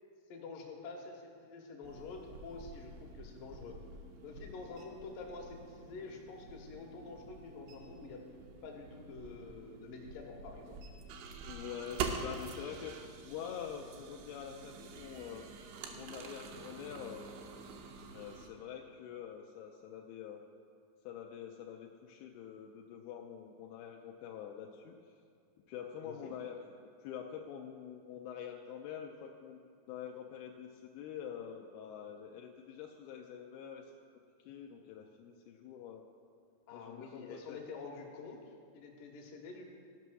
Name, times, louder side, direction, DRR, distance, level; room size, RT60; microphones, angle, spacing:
voice 1, 0.3-3.8 4.2-8.2 8.6-10.8 26.0-26.3 36.7-38.4 38.7-39.7, left 4 dB, 65° left, 0 dB, 2.4 m, -47 dB
sound 1, 1.8-18.5, right 5 dB, 90° right, 3.0 m, -46 dB
voice 2, 11.4-13.0 13.2-15.4 15.9-17.2 18.1-20.4 21.0-25.1 25.7-26.6 27.0-33.9 34.5-36.0 36.7-37.6, left 8 dB, 85° left, 1 dB, 2.2 m, -46 dB
15.0 x 5.5 x 6.2 m, 2.3 s
omnidirectional pair, 5.1 m